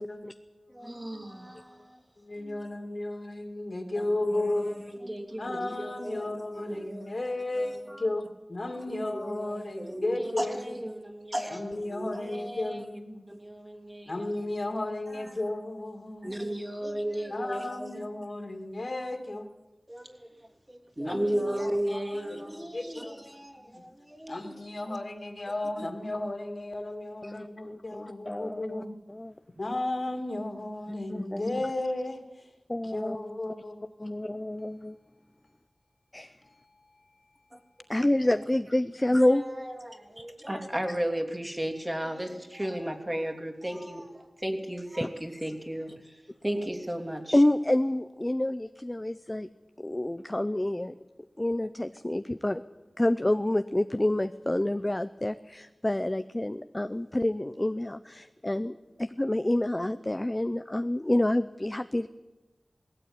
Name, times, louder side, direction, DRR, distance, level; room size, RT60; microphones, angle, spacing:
voice 1, 0.0-1.9 2.2-4.8 5.4-10.8 11.5-13.3 14.0-16.3 17.3-19.5 21.0-22.4 22.7-23.2 23.6-23.8 24.3-29.0 29.6-32.5 32.8-34.1 36.4-37.4, left 2 dB, 50° left, 2.8 m, -34 dB
voice 2, 0.7-2.0 2.4-2.6 4.0-7.2 7.5-8.0 8.9-12.9 13.3-14.3 15.1-15.3 16.2-18.1 19.9-20.3 20.7-24.5 24.8-25.0 25.8-25.9 37.5-37.6 39.1-47.4, right 1 dB, 20° right, 3.1 m, -35 dB
voice 3, 27.2-28.8 29.1-29.3 31.1-31.6 32.7-33.2 34.0-35.0 36.1-36.4 37.9-39.4 47.3-49.5 49.8-51.0 51.4-52.6 53.0-62.1, left 1 dB, 20° left, 0.7 m, -28 dB
19.0 x 16.5 x 9.9 m
wide cardioid pair, 65°, 0 cm